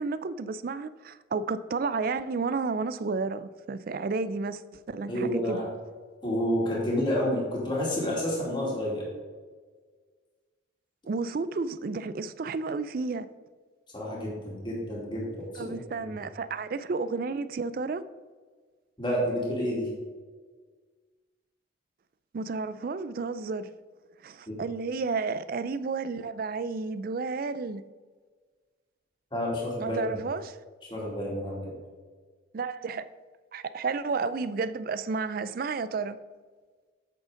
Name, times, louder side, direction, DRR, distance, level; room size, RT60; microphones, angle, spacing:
voice 1, 0.0-4.6 4.9-5.6 11.1-13.3 15.6-18.0 22.3-23.7 24.2-27.8 29.8-30.6 32.5-33.1 33.5-36.2, right 4 dB, 45° right, 0.3 m, -31 dB
voice 2, 5.1-5.7 6.2-9.1 13.9-15.7 16.0-16.1 19.0-19.9 24.5-24.6 29.3-30.0 30.9-31.7, equal, 25° left, 2.3 m, -29 dB
8.4 x 6.4 x 3.7 m
head